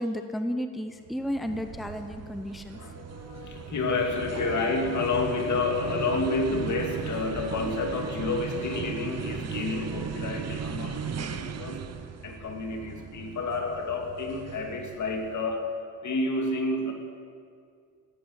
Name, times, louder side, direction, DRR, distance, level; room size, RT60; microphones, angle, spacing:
voice 1, 0.0-2.8, equal, ahead, 7 dB, 0.9 m, -32 dB
sound 1, 1.1-15.6, right 7 dB, 50° right, 0.9 m, -37 dB
voice 2, 2.7-11.9 12.2-15.6 16.0-16.9, left 3 dB, 60° left, 2 dB, 2.7 m, -30 dB
14.0 x 9.3 x 9.0 m, 2.3 s
cardioid pair, 75°, 33 cm